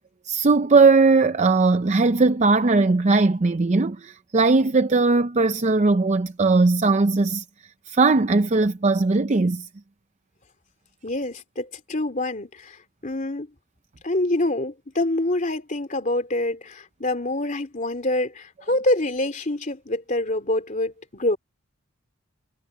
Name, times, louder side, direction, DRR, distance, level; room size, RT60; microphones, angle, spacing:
voice 1, 0.3-7.4 7.9-9.7, right 3 dB, 35° right, 0.5 m, -19 dB
voice 2, 11.0-13.5 14.0-21.4, left 1 dB, 40° left, 3.0 m, -26 dB
head